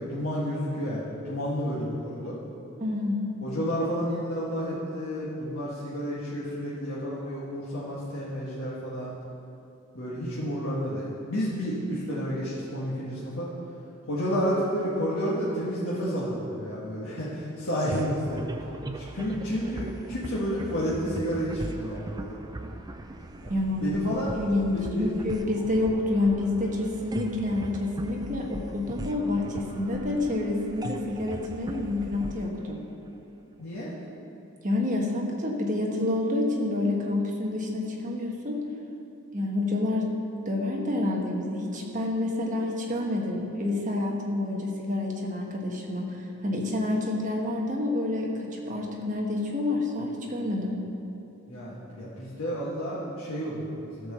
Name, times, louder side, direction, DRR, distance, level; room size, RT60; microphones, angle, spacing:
voice 1, 0.0-2.4 3.4-9.1 9.9-13.5 14.1-18.4 19.0-22.4 23.4-23.5 23.8-24.3 24.7-25.1 33.6-33.9 51.5-54.1, equal, 70° left, -9 dB, 1.6 m, -31 dB
voice 2, 2.8-3.3 23.5-32.8 34.6-38.6 39.3-40.1 40.4-50.8, left 2 dB, 35° right, 0 dB, 1.3 m, -28 dB
sound 1, 17.9-33.5, right 1 dB, 20° right, 0.4 m, -39 dB
13.5 x 4.6 x 6.9 m, 2.8 s
head